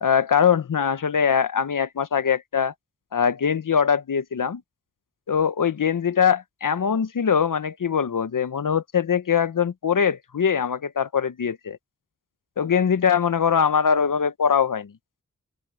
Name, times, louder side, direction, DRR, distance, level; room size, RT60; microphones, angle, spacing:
voice 1, 0.0-2.7 3.1-4.6 5.3-11.8 12.6-14.9, left 7 dB, 85° left, 0.9 m, -22 dB
open air
cardioid pair, 40°, 31 cm